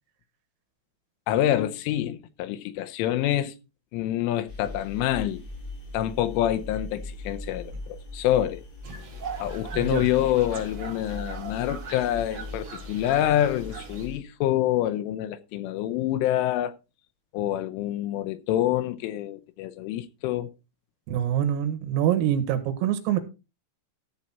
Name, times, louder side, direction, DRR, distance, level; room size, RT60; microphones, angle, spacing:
voice 1, 1.3-3.6 3.9-5.4 5.9-8.6 9.4-16.8 17.3-20.5, left 12 dB, 80° left, 3.0 m, -26 dB
sound 1, 4.5-14.2, left 1 dB, 55° left, 7.4 m, -39 dB
sound 2, 8.8-14.1, right 5 dB, 40° right, 3.5 m, -41 dB
voice 2, 21.1-23.2, right 10 dB, 90° right, 4.3 m, -25 dB
14.0 x 7.3 x 4.2 m
omnidirectional pair, 6.0 m